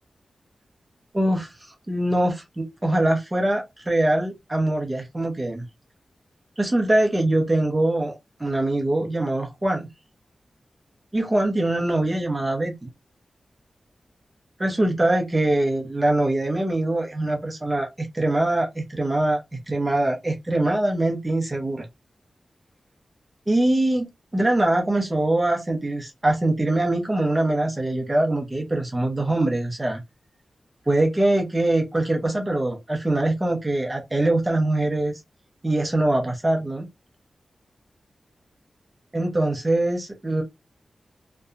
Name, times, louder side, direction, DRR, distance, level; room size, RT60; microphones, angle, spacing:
voice 1, 1.1-1.5 1.9-5.6 6.6-9.9 11.1-12.9 14.6-21.9 23.5-30.0 30.9-35.2 35.6-36.9 39.1-40.4, right 1 dB, 20° right, 0.7 m, -23 dB
2.7 x 2.1 x 2.4 m
wide cardioid pair, 100°, 0 cm